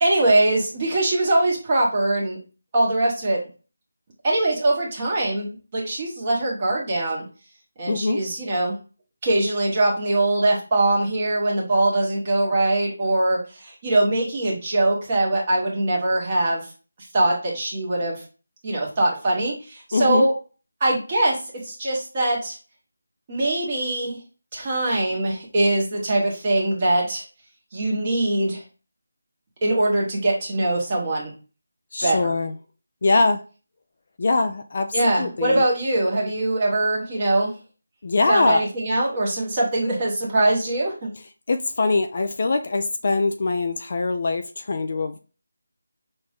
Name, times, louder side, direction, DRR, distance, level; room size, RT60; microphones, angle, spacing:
voice 1, 0.0-2.4 2.7-3.4 4.2-7.2 7.8-8.7 9.2-16.7 17.1-18.2 18.6-20.3 20.8-22.6 23.3-24.2 24.5-27.2 27.7-28.6 29.6-31.3 32.0-32.3 34.9-37.5 38.3-41.1, right 2 dB, 20° right, 1.3 m, -22 dB
voice 2, 7.8-8.2 19.9-20.3 31.9-32.5 33.0-33.4 34.2-35.6 38.0-38.6 41.5-45.2, left 3 dB, 40° left, 0.4 m, -22 dB
5.9 x 2.6 x 3.5 m
figure-of-eight pair, 175°, 0 cm